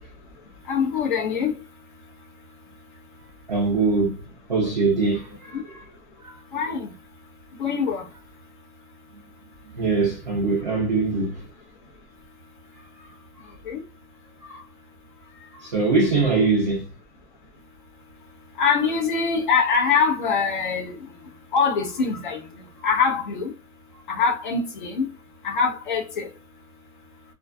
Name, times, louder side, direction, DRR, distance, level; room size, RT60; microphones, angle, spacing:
voice 1, 0.7-1.5 5.5-5.6 6.5-6.9 7.6-8.1 13.7-13.8 18.6-21.0 21.5-22.4 22.8-23.5 24.1-25.1 25.4-26.3, left 5 dB, 35° left, 0.4 m, -23 dB
voice 2, 3.5-4.2 4.5-5.6 6.2-6.3 9.1-9.2 9.7-11.4 14.5-14.6 15.6-16.9, right 3 dB, 30° right, 0.4 m, -22 dB
2.3 x 2.3 x 2.4 m
hypercardioid pair, 150°, 47 cm